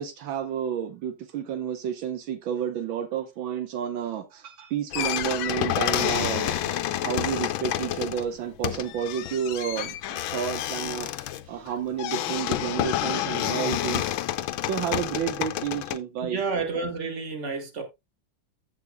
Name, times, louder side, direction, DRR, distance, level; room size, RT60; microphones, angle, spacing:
voice 1, 0.0-14.3 14.6-16.4, right 8 dB, 80° right, 1.6 m, -31 dB
sound 1, 4.9-16.0, left 13 dB, 85° left, 1.5 m, -29 dB
voice 2, 16.2-17.8, right 4 dB, 40° right, 2.0 m, -30 dB
15.0 x 6.1 x 2.2 m
omnidirectional pair, 2.1 m